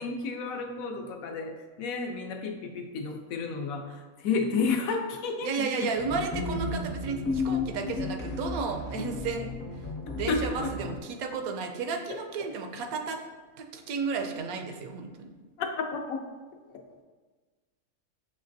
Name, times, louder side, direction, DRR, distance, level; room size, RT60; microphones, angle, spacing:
voice 1, 0.0-5.9 10.3-10.7 15.6-16.3, left 4 dB, 80° left, 4 dB, 1.0 m, -31 dB
voice 2, 5.4-9.5 10.2-13.2 13.6-15.3, right 4 dB, 80° right, 4 dB, 1.0 m, -33 dB
sound 1, 5.9-11.0, left 3 dB, 55° left, 1.0 m, -33 dB
6.6 x 3.1 x 2.6 m, 1.4 s
omnidirectional pair, 1.5 m